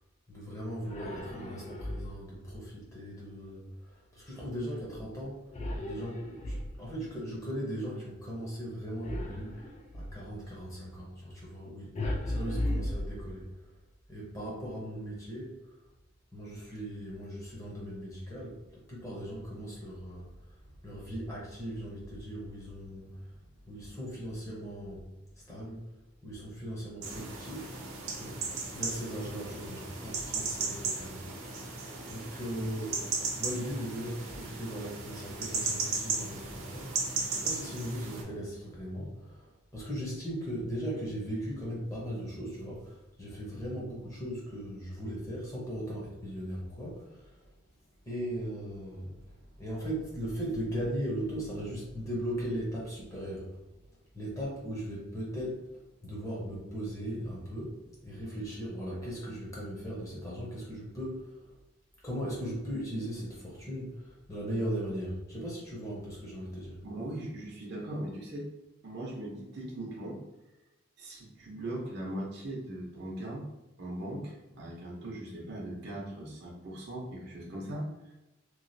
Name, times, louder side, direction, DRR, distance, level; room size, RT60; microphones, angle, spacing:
voice 1, 0.3-5.5 5.8-13.5 14.1-15.5 16.3-18.6 18.9-20.6 20.8-25.0 25.4-25.8 26.2-27.7 28.2-28.4 28.7-31.8 32.1-47.5 48.0-53.6 54.1-57.8 58.0-61.4 62.0-66.8, equal, 15° left, -5 dB, 0.8 m, -38 dB
sound 1, 0.8-2.4 5.5-7.1 9.0-10.2 11.9-13.6, left 1 dB, 30° left, 0.3 m, -36 dB
sound 2, 27.0-38.2, right 4 dB, 85° right, 0.6 m, -36 dB
voice 2, 66.8-68.5 68.8-70.2 71.0-73.5 73.8-78.1, right 1 dB, 50° right, -3 dB, 0.7 m, -39 dB
3.0 x 2.4 x 2.6 m, 1.0 s
head